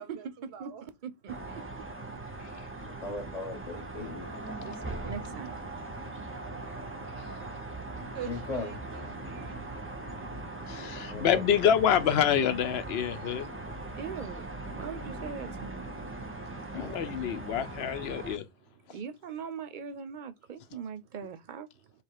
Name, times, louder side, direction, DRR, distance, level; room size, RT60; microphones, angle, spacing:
voice 1, 0.0-0.9 5.4-5.9 6.6-9.6 13.2-13.6 16.4-17.2 18.1-19.0, right 10 dB, 90° right, 0.9 m, -49 dB
voice 2, 0.6-1.6 4.6-5.6 13.9-14.4 14.7-15.9 18.9-21.7, right 6 dB, 55° right, 0.6 m, -41 dB
sound 1, 1.3-18.4, right 2 dB, 15° right, 0.7 m, -40 dB
voice 3, 2.8-4.3 8.2-8.7 11.1-11.4 16.7-17.0, left 3 dB, 35° left, 1.0 m, -38 dB
voice 4, 10.7-13.5 16.7-18.4, left 9 dB, 80° left, 0.8 m, -27 dB
3.3 x 2.9 x 4.7 m
omnidirectional pair, 1.0 m